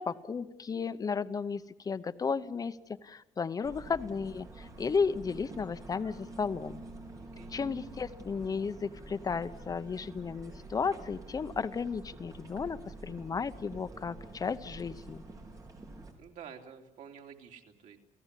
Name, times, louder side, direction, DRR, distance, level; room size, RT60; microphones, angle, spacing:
voice 1, 0.0-2.8 3.0-6.8 7.5-15.2, left 5 dB, 30° left, 12 dB, 0.8 m, -34 dB
sound 1, 3.6-16.1, right 2 dB, 30° right, 4.3 m, -48 dB
voice 2, 7.2-7.6 16.2-18.0, right 7 dB, 85° right, 3 dB, 3.1 m, -50 dB
29.5 x 17.5 x 8.3 m, 0.91 s
cardioid pair, 160°, 12 cm